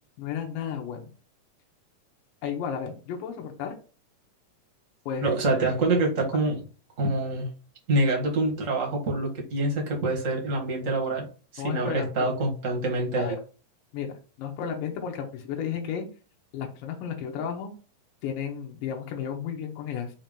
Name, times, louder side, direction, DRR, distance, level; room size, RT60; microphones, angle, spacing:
voice 1, 0.2-1.1 2.4-3.8 5.1-5.4 11.6-12.1 13.2-13.4 13.9-16.1 16.5-17.7 18.2-20.1, left 7 dB, 75° left, 2 dB, 2.7 m, -33 dB
voice 2, 5.2-6.6 7.0-7.5 7.9-11.3 11.5-13.4, right 2 dB, 40° right, 0 dB, 1.1 m, -26 dB
6.2 x 3.0 x 5.2 m, 0.36 s
omnidirectional pair, 4.0 m